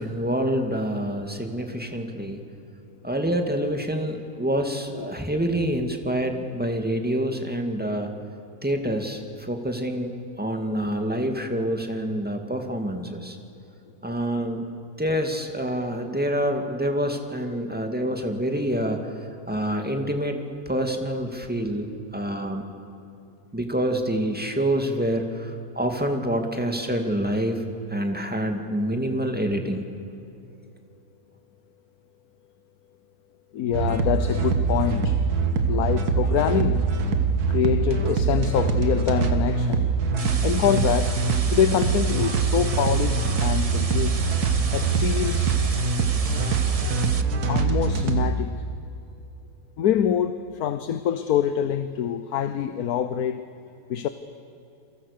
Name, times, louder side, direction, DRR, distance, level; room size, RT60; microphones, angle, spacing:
voice 1, 0.0-2.4 3.0-8.1 8.6-10.1 10.4-13.4 14.0-14.7 15.0-19.1 19.5-22.6 23.5-27.6 27.9-29.8, equal, 5° right, 4 dB, 2.1 m, -27 dB
voice 2, 33.5-35.2 35.7-36.8 37.5-39.9 40.4-41.2 41.5-44.2 44.7-45.6 47.5-48.6 49.8-53.5 53.9-54.1, left 9 dB, 75° left, 11 dB, 1.3 m, -25 dB
sound 1, 33.7-48.3, right 5 dB, 75° right, 2.0 m, -23 dB
sound 2, 40.2-47.2, right 4 dB, 25° right, 0.9 m, -35 dB
28.5 x 23.0 x 6.7 m, 2.7 s
omnidirectional pair, 1.7 m